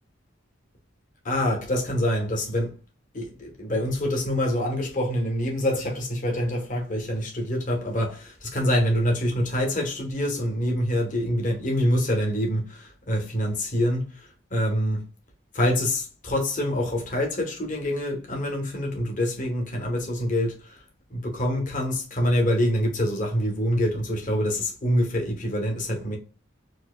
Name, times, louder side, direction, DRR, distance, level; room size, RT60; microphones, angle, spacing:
voice 1, 1.2-2.8 3.1-15.0 15.5-20.8 21.1-26.2, equal, 40° left, 1.2 m, -26 dB
4.3 x 2.8 x 2.2 m
head